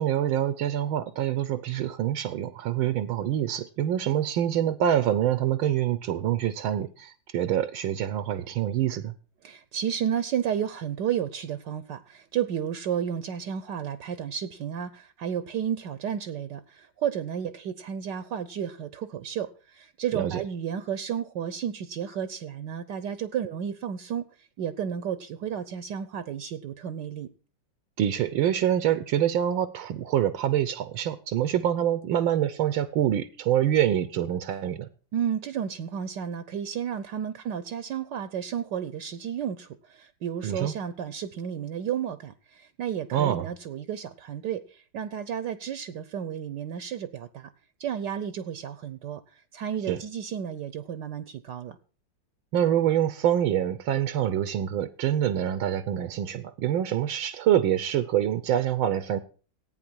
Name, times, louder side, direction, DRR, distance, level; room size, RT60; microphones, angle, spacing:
voice 1, 0.0-9.1 20.1-20.4 28.0-34.9 40.4-40.7 43.1-43.5 49.9-50.0 52.5-59.2, right 10 dB, 80° right, 13 dB, 1.6 m, -26 dB
voice 2, 9.4-24.2 24.6-27.3 35.1-47.5 47.8-49.2 49.5-51.8, right 8 dB, 65° right, 14 dB, 1.3 m, -32 dB
15.0 x 9.2 x 6.3 m, 0.39 s
omnidirectional pair, 2.2 m